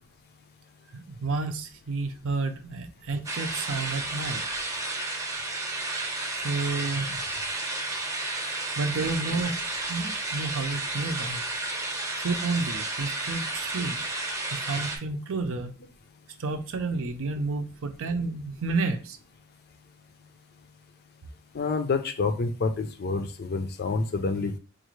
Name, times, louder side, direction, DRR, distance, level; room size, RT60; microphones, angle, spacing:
voice 1, 0.9-4.4 6.4-7.2 8.8-9.6 9.9-11.4 12.2-14.0 14.5-15.8 16.4-19.2, right 3 dB, 65° right, 7 dB, 0.6 m, -30 dB
sound 1, 3.3-15.0, right 2 dB, 15° right, 0.8 m, -32 dB
voice 2, 21.5-24.6, left 4 dB, 50° left, 8 dB, 0.5 m, -28 dB
4.5 x 2.5 x 3.1 m, 0.36 s
head